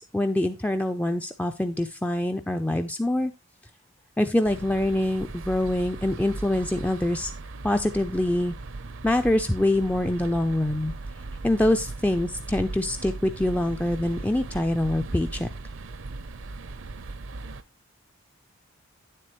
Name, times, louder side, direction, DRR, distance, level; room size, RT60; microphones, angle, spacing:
voice 1, 0.0-3.3 4.2-7.3 7.6-8.5 9.0-10.9 11.4-15.5, left 1 dB, 5° left, 7 dB, 0.4 m, -25 dB
sound 1, 4.4-17.6, right 3 dB, 60° right, 0.6 m, -38 dB
9.6 x 7.6 x 3.0 m, 0.26 s
head